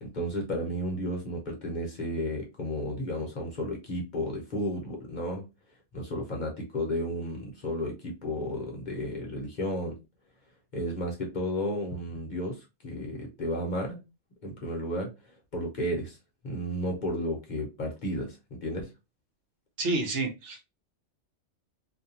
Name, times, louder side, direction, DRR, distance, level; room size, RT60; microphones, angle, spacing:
voice 1, 0.0-5.5 5.9-10.0 10.7-14.0 14.4-15.1 15.5-16.2 16.4-18.9, equal, 45° left, 0.8 m, -33 dB
voice 2, 19.8-20.6, right 2 dB, 75° right, 1.0 m, -29 dB
2.6 x 2.3 x 2.7 m
omnidirectional pair, 1.2 m